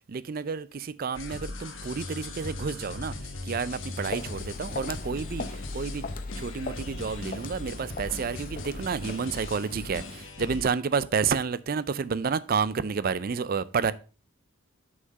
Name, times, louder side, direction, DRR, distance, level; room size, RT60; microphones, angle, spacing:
voice 1, 0.0-6.1 6.4-13.9, right 5 dB, 45° right, 0.4 m, -30 dB
sound 1, 1.1-10.7, left 2 dB, 60° left, 1.3 m, -38 dB
Walk footsteps, 3.7-10.3, left 4 dB, 40° left, 0.6 m, -42 dB
6.3 x 5.9 x 5.2 m
head